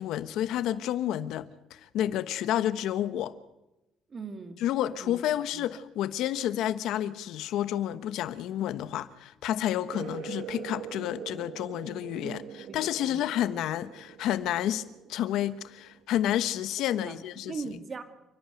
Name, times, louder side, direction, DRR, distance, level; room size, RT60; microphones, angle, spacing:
voice 1, 0.0-3.3 4.6-12.4 12.7-17.5, left 12 dB, 75° left, 1.2 m, -30 dB
voice 2, 4.1-4.6 5.0-5.2 5.5-5.7 12.2-12.4 12.7-13.2 13.5-13.6 17.0-18.0, right 4 dB, 35° right, 2.7 m, -40 dB
sound 1, 9.9-16.0, right 10 dB, 75° right, 1.7 m, -44 dB
29.5 x 11.5 x 9.2 m
cardioid pair, 105°, 0 cm